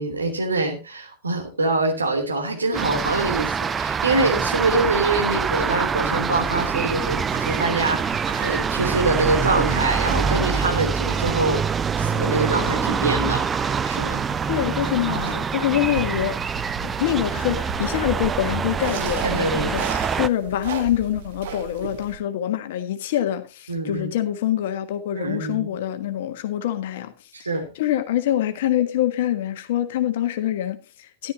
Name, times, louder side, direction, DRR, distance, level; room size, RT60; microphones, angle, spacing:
voice 1, 0.0-11.7 11.9-14.2 15.1-15.4 19.2-19.8 23.7-24.1 25.2-25.7 27.3-27.7, right 2 dB, 75° right, 3.1 m, -25 dB
sound 1, 2.7-20.3, right 6 dB, 20° right, 0.5 m, -25 dB
sound 2, 6.6-22.2, right 6 dB, 55° right, 1.6 m, -37 dB
voice 2, 14.5-16.3 16.8-27.1 27.7-31.3, left 12 dB, 55° left, 1.5 m, -25 dB
13.5 x 11.5 x 2.8 m
figure-of-eight pair, 90°, 0 cm